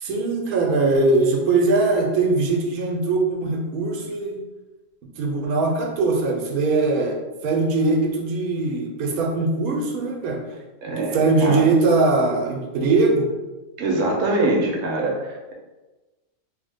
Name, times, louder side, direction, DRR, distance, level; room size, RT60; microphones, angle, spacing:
voice 1, 0.0-4.4 5.2-10.4 10.9-13.3, right 3 dB, 85° right, 1 dB, 1.1 m, -21 dB
voice 2, 10.8-11.7 13.8-15.5, right 2 dB, 65° right, -1 dB, 1.0 m, -23 dB
3.1 x 2.1 x 3.3 m, 1.1 s
omnidirectional pair, 1.5 m